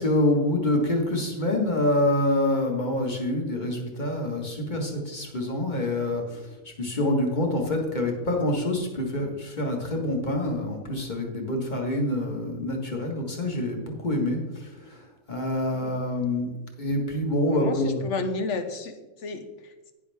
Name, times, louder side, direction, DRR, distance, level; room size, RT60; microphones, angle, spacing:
voice 1, 0.0-6.4 6.8-18.0, left 1 dB, 30° left, 1 dB, 1.8 m, -26 dB
voice 2, 17.5-19.9, left 3 dB, 55° left, 8 dB, 1.3 m, -33 dB
11.0 x 10.0 x 3.5 m, 1.1 s
omnidirectional pair, 1.5 m